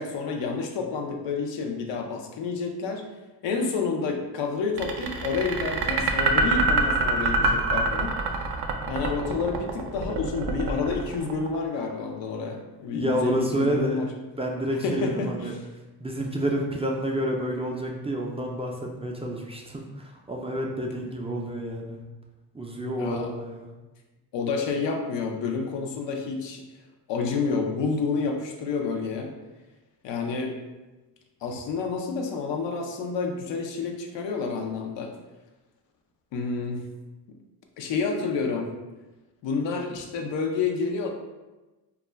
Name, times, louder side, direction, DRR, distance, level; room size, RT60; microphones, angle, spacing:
voice 1, 0.0-3.0 3.4-8.2 8.9-14.1 14.8-15.6 20.9-21.1 23.0-23.3 24.3-26.6 27.1-29.3 30.0-30.6 31.4-35.1 36.3-36.8 37.3-37.4 37.8-38.7 39.4-41.1, left 4 dB, 85° left, 3 dB, 0.5 m, -29 dB
sound 1, 4.8-11.9, right 3 dB, 65° right, 0.5 m, -25 dB
voice 2, 12.9-14.1 14.4-15.5 16.0-22.0 22.5-23.7, right 1 dB, 15° right, -1 dB, 0.3 m, -29 dB
2.3 x 2.1 x 3.2 m, 1.1 s
cardioid pair, 55°, 43 cm